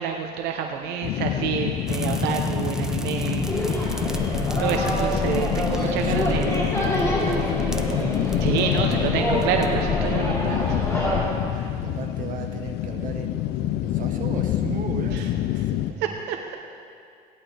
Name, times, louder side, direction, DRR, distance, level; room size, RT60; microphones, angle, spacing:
voice 1, 0.0-4.0 4.6-6.5 8.4-10.8 11.6-11.7 15.1-15.2 16.0-16.6, right 7 dB, 85° right, 4 dB, 0.8 m, -28 dB
sound 1, 1.0-15.9, left 13 dB, 75° left, 0.4 m, -27 dB
sound 2, 1.9-9.9, right 1 dB, 5° right, 0.7 m, -33 dB
sound 3, 3.5-11.3, left 1 dB, 15° left, 3.4 m, -27 dB
voice 2, 5.8-6.5 7.2-8.1 8.6-9.0 11.4-16.2, right 6 dB, 50° right, 3 dB, 1.4 m, -36 dB
17.5 x 11.0 x 3.4 m, 2.3 s
cardioid pair, 110°, 17 cm